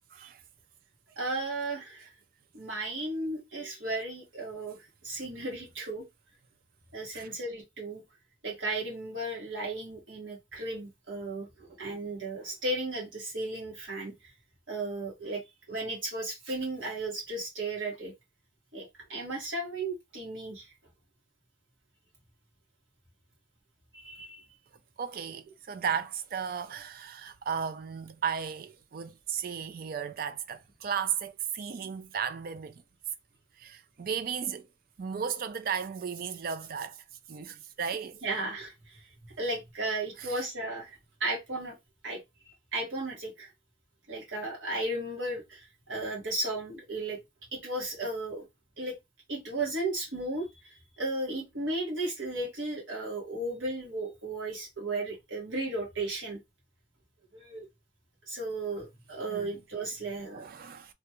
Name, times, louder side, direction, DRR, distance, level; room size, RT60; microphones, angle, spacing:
voice 1, 0.1-0.4 7.1-7.3 25.0-32.8 33.6-34.7 35.0-38.2 40.2-40.3 59.3-59.6 60.3-60.9, right 7 dB, 50° right, 0.4 m, -35 dB
voice 2, 1.2-2.1 2.5-4.8 5.0-6.0 6.9-8.0 8.4-14.1 14.7-15.4 15.7-18.1 18.7-20.6 23.9-24.4 38.2-38.7 39.4-41.8 42.0-42.2 42.7-43.5 44.1-47.2 47.5-48.4 48.8-48.9 49.3-56.4 57.3-57.7 58.3-60.5, right 2 dB, 85° right, 1.6 m, -35 dB
3.2 x 2.3 x 2.9 m
head